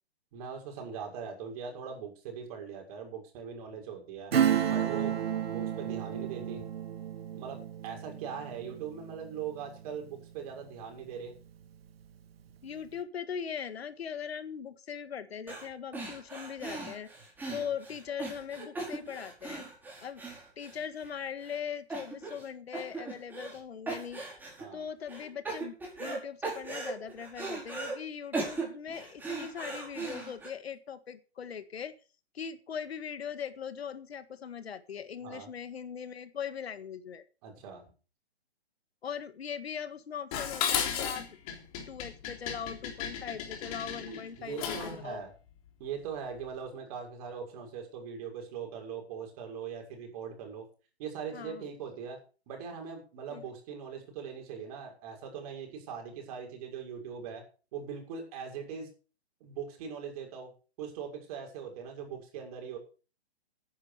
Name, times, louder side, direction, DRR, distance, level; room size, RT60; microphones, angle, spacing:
voice 1, 0.3-4.3 4.7-6.6 7.3-11.3 17.5-17.7 24.6-24.8 35.2-35.5 37.4-37.8 44.1-45.3 45.8-50.7 51.0-52.2 52.5-57.4 57.7-58.9 59.4-60.5 60.8-62.8, right 7 dB, 35° right, 2 dB, 6.3 m, -41 dB
Acoustic guitar / Strum, 4.3-10.5 10.9-11.0, right 9 dB, 65° right, 2.0 m, -32 dB
voice 2, 12.6-17.1 17.5-19.6 20.0-20.2 20.6-24.2 24.7-32.0 32.3-37.2 39.0-41.4 41.9-45.2 51.3-51.7 53.3-53.4, left 7 dB, 70° left, 12 dB, 1.8 m, -40 dB
sound 1, 15.5-15.7 15.9-21.1 21.4-21.6 21.9-22.5 22.7-23.6 23.9-24.6 25.1-26.2 26.4-27.9 28.3-30.5, right 3 dB, 5° right, 5.3 m, -38 dB
Dishes pots and pans, 40.3-45.0, left 8 dB, 35° left, 3.5 m, -35 dB
14.0 x 10.5 x 5.1 m, 0.36 s
hypercardioid pair, 150°, 32 cm